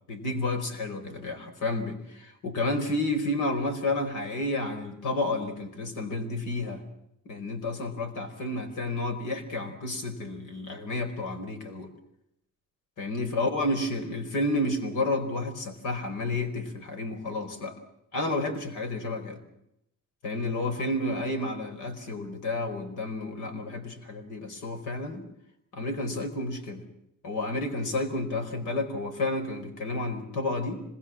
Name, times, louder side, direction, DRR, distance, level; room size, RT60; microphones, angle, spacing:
voice 1, 0.1-6.8 7.2-11.9 13.0-17.7 18.1-19.4 20.2-25.2 25.7-26.8 27.2-30.8, left 2 dB, 80° left, 6 dB, 4.8 m, -31 dB
26.0 x 21.0 x 7.5 m, 0.80 s
cardioid pair, 90°, 30 cm